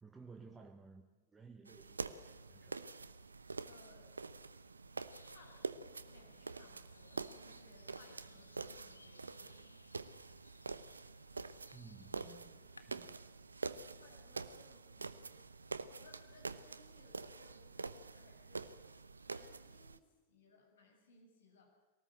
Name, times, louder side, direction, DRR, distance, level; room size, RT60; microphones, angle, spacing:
voice 1, 0.0-2.8 11.7-13.2, right 4 dB, 15° right, 4 dB, 1.3 m, -57 dB
sound 1, 1.6-20.0, right 4 dB, 75° right, 0.8 m, -47 dB
voice 2, 3.6-4.2 5.2-9.8 13.7-15.4 15.8-18.7 19.2-21.8, left 2 dB, 65° left, 0 dB, 7.0 m, -64 dB
sound 2, 5.1-13.0, left 3 dB, 80° left, 1.0 m, -64 dB
22.5 x 18.5 x 7.7 m, 1.3 s
figure-of-eight pair, 90°, 0 cm